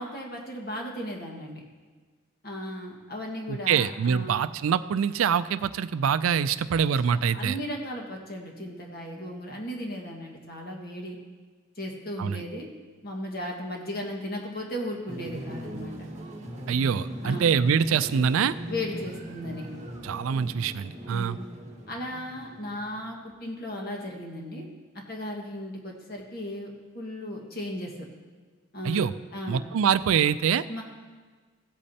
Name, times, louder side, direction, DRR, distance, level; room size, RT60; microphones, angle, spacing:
voice 1, 0.0-1.6 2.4-4.4 7.1-11.2 11.7-12.7 13.0-16.0 17.2-17.5 18.7-19.7 21.1-21.5 21.9-24.7 25.1-28.1 28.7-29.6 30.7-30.8, left 1 dB, 45° left, 0 dB, 1.6 m, -36 dB
voice 2, 3.5-7.6 12.2-12.4 16.7-18.5 20.0-21.4 28.8-29.1 29.5-30.6, right 7 dB, 80° right, 14 dB, 0.4 m, -25 dB
sound 1, 15.1-23.1, equal, 35° right, 1.3 m, -39 dB
16.0 x 8.4 x 2.8 m, 1.4 s
head